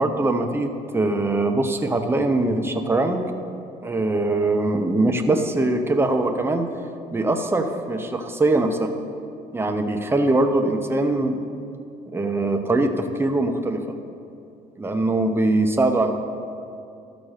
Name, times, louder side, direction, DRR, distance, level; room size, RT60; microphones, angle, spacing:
voice 1, 0.0-3.3 3.8-6.7 7.1-8.9 9.5-11.4 12.1-13.8 14.8-16.1, right 2 dB, 15° right, 5 dB, 0.8 m, -22 dB
13.0 x 5.1 x 6.5 m, 2.5 s
cardioid pair, 110°, 17 cm